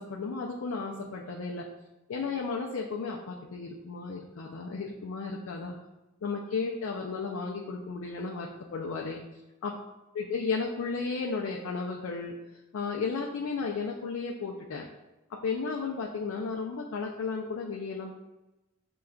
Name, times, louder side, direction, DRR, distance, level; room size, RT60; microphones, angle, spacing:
voice 1, 0.0-1.7 2.1-5.7 6.2-9.2 9.6-9.7 10.1-12.4 12.7-14.9 15.3-18.1, left 4 dB, 85° left, 0 dB, 0.4 m, -34 dB
6.2 x 2.3 x 2.3 m, 1.0 s
head